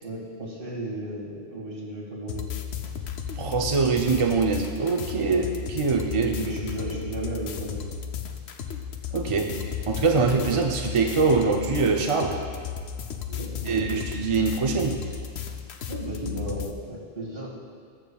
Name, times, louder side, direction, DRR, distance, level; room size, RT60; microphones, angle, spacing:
voice 1, 0.0-2.5 5.2-5.5 5.8-7.9 13.2-14.1 15.9-17.5, right 1 dB, 60° right, -5 dB, 2.2 m, -35 dB
sound 1, 2.3-16.7, left 7 dB, 90° left, 0.9 m, -34 dB
voice 2, 3.4-5.4 5.7-6.3 9.1-9.5 9.9-12.4 13.7-15.0, right 4 dB, 40° right, 1 dB, 0.6 m, -23 dB
19.0 x 7.1 x 2.3 m, 2.1 s
omnidirectional pair, 1.1 m